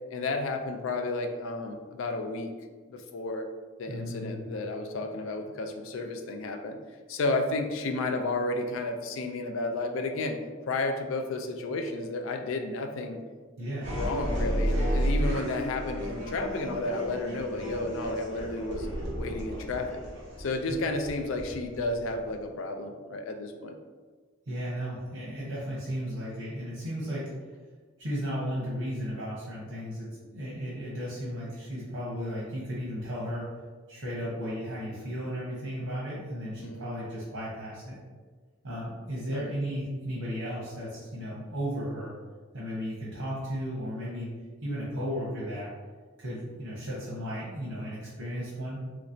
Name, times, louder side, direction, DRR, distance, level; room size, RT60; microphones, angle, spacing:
voice 1, 0.1-2.5 2.9-3.5 3.8-6.8 7.1-10.4 10.7-13.2 13.9-18.9 19.2-20.0 20.4-23.8 36.6-36.9 39.3-39.5, left 2 dB, 70° left, 5 dB, 0.4 m, -32 dB
voice 2, 3.9-4.5 13.6-14.0 20.7-20.8 24.5-27.3 28.0-33.5 33.9-38.0 38.6-42.1 42.5-44.3 44.6-45.7 46.2-48.8, equal, 90° right, -7 dB, 1.0 m, -35 dB
sound 1, 13.8-22.4, equal, 60° right, 0.9 m, -32 dB
3.1 x 3.0 x 2.6 m, 1.4 s
head